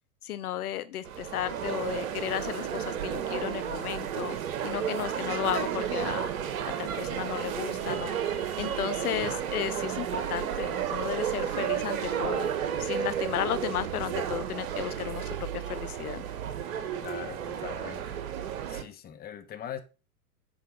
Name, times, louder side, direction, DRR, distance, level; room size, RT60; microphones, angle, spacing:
voice 1, 0.2-4.4 4.6-6.3 6.7-12.5 12.8-16.2, left 12 dB, 70° left, 0.7 m, -34 dB
sound 1, 1.0-18.8, right 9 dB, 60° right, 1.3 m, -32 dB
voice 2, 17.0-18.2 18.7-19.8, left 9 dB, 20° left, 1.1 m, -41 dB
7.9 x 4.8 x 5.5 m
hypercardioid pair, 105°, 47 cm